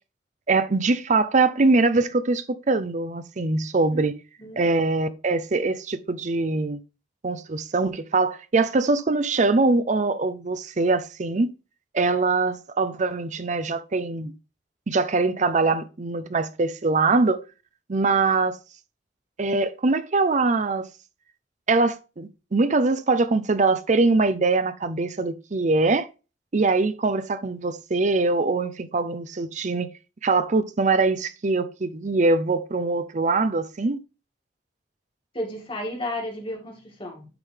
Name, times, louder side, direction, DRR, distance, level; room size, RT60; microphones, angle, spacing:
voice 1, 0.5-4.2 4.6-6.8 7.2-11.5 11.9-14.3 14.9-17.4 17.9-18.6 19.4-20.9 21.7-26.1 26.5-29.9 30.2-34.0, right 3 dB, 45° right, 0.6 m, -23 dB
voice 2, 35.3-37.3, left 1 dB, 30° left, 2.2 m, -33 dB
10.5 x 3.8 x 3.3 m
head